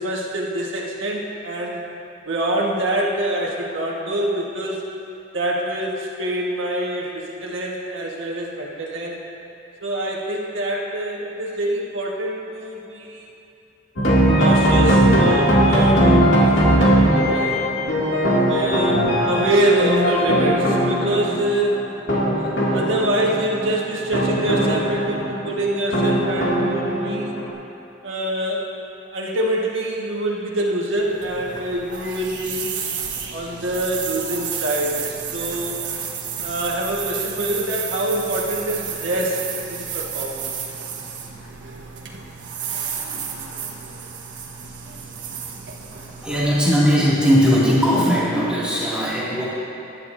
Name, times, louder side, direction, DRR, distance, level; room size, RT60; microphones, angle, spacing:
voice 1, 0.0-1.8 2.2-4.8 5.3-9.2 9.8-13.3 14.4-17.6 18.5-21.9 22.3-27.3 28.0-28.7 29.1-32.7 33.3-35.8 36.4-40.5, right 1 dB, 90° right, -3 dB, 1.5 m, -25 dB
sound 1, 14.0-27.5, right 1 dB, 75° left, 2.3 m, -19 dB
sound 2, 31.0-47.2, right 7 dB, 70° right, 1.3 m, -32 dB
voice 2, 46.2-49.5, equal, 5° right, -10 dB, 2.3 m, -18 dB
19.0 x 10.5 x 2.6 m, 2.9 s
head